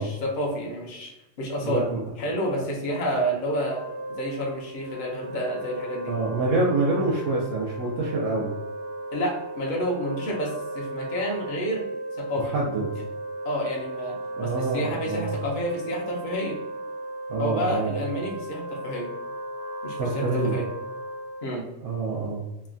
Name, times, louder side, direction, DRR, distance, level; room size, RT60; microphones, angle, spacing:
voice 1, 0.0-1.8 2.2-3.8 4.1-6.1 9.1-11.9 12.2-12.4 13.4-14.1 14.4-16.6 17.4-19.1 19.8-20.7 21.4-21.6, equal, 50° left, -2 dB, 0.6 m, -29 dB
voice 2, 1.6-2.0 6.1-8.5 12.4-12.8 14.4-15.3 17.3-18.0 20.0-20.6 21.8-22.4, right 3 dB, 85° right, -4 dB, 1.0 m, -26 dB
Wind instrument woodwind instrument, 3.5-21.6, right 1 dB, 65° right, 1.3 m, -36 dB
3.2 x 2.2 x 2.4 m, 0.98 s
omnidirectional pair, 1.3 m